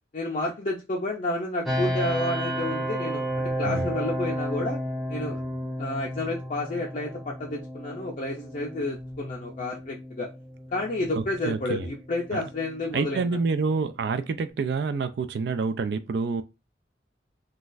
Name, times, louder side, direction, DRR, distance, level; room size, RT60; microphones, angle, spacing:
voice 1, 0.1-4.8 5.1-5.4 5.8-10.3 10.7-13.4, left 2 dB, 45° left, 0.5 m, -30 dB
sound 1, 1.6-14.5, equal, ahead, 0.7 m, -33 dB
voice 2, 11.2-11.9 12.3-12.4 12.9-16.4, right 4 dB, 65° right, 0.3 m, -28 dB
3.8 x 2.3 x 2.5 m
head